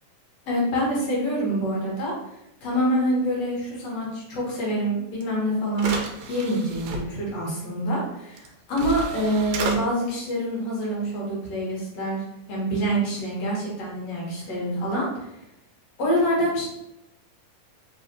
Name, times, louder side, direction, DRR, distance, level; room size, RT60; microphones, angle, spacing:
voice 1, 0.5-2.1 2.6-5.9 6.3-12.2 12.5-15.1 16.0-16.6, equal, 60° left, -5 dB, 2.4 m, -26 dB
sound 1, 5.2-5.3 5.7-7.0 8.4-8.5 8.8-9.8, right 2 dB, 75° right, 1.9 m, -31 dB
5.0 x 3.3 x 2.7 m, 0.86 s
omnidirectional pair, 3.6 m